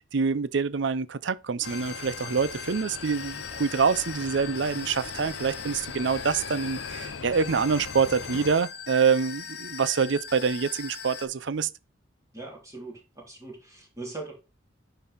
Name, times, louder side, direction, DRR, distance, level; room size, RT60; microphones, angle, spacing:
voice 1, 0.1-11.7, right 5 dB, 65° right, 0.5 m, -26 dB
sound 1, 1.6-8.6, left 5 dB, 80° left, 0.6 m, -41 dB
sound 2, 1.6-11.3, left 6 dB, 55° left, 1.1 m, -40 dB
voice 2, 12.3-14.3, right 3 dB, 15° right, 3.0 m, -40 dB
9.7 x 4.0 x 4.0 m
head